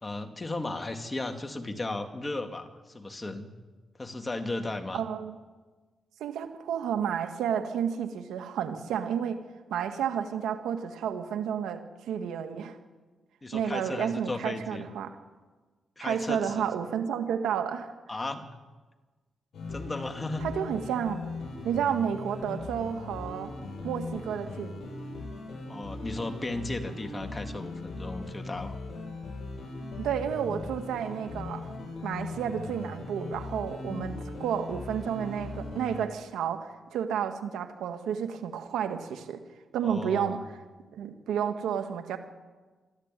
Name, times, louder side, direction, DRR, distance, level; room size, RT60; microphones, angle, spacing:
voice 1, 0.0-3.5 4.0-5.0 13.4-14.9 16.0-16.7 18.1-18.5 19.7-20.5 25.7-28.8 33.8-34.3 39.8-40.3, left 2 dB, 25° left, 6 dB, 2.3 m, -35 dB
voice 2, 4.9-5.4 6.2-9.4 9.7-12.8 13.5-15.1 16.0-17.9 20.4-21.2 21.6-23.5 23.8-24.9 30.0-31.7 32.0-39.4 39.7-40.4 40.9-42.2, right 8 dB, 90° right, 7 dB, 1.8 m, -31 dB
sound 1, 19.5-36.1, left 3 dB, 65° left, 7.9 m, -39 dB
23.5 x 13.5 x 9.1 m, 1.3 s
cardioid pair, 70°, 0 cm